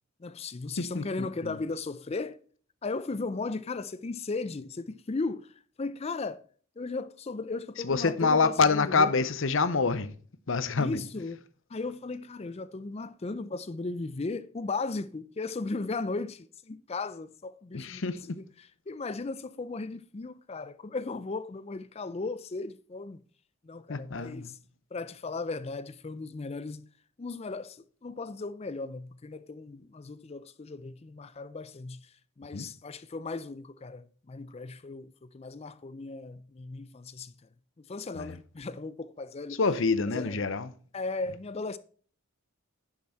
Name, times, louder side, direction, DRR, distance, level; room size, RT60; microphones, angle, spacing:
voice 1, 0.2-2.4 2.8-6.4 6.8-9.1 10.8-11.4 11.7-18.0 18.3-18.4 18.9-23.2 23.6-24.5 24.9-26.9 27.2-37.3 37.8-39.6 40.1-40.5 40.9-41.8, left 3 dB, 30° left, 0.4 m, -36 dB
voice 2, 0.8-1.6 7.8-10.1 10.5-11.0 17.7-18.4 23.9-24.6 32.5-32.7 38.1-38.4 39.6-40.7, left 4 dB, 60° left, 0.7 m, -27 dB
10.5 x 6.0 x 4.4 m
head